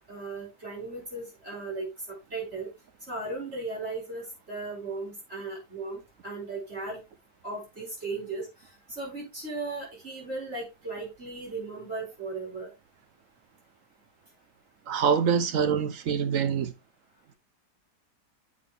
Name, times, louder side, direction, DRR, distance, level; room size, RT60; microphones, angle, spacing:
voice 1, 0.1-2.7 3.1-7.0 7.4-8.5 8.9-12.7, right 3 dB, 35° right, 5.2 m, -36 dB
voice 2, 14.9-16.7, right 7 dB, 60° right, 1.1 m, -25 dB
8.6 x 5.2 x 3.4 m
omnidirectional pair, 1.7 m